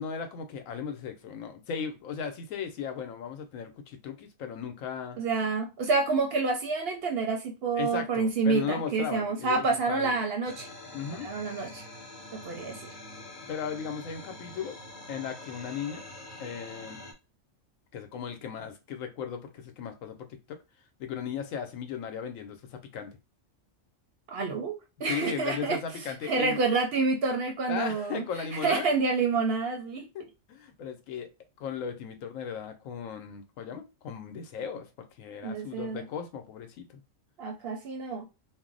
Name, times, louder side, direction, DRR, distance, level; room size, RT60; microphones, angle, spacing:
voice 1, 0.0-5.2 7.8-10.2 10.9-11.3 13.5-14.8 15.1-16.1 16.4-17.0 17.9-20.6 21.0-23.1 25.1-26.6 27.7-29.0 30.1-31.3 31.6-37.0, left 7 dB, 80° left, 1.0 m, -37 dB
voice 2, 5.2-10.7 11.2-11.8 12.3-12.9 24.3-24.7 25.0-25.8 26.2-28.2 28.5-30.0 35.4-36.1 37.4-38.2, right 4 dB, 60° right, 0.7 m, -28 dB
sound 1, 10.4-17.1, left 1 dB, 40° left, 0.9 m, -45 dB
2.5 x 2.0 x 3.7 m
omnidirectional pair, 1.4 m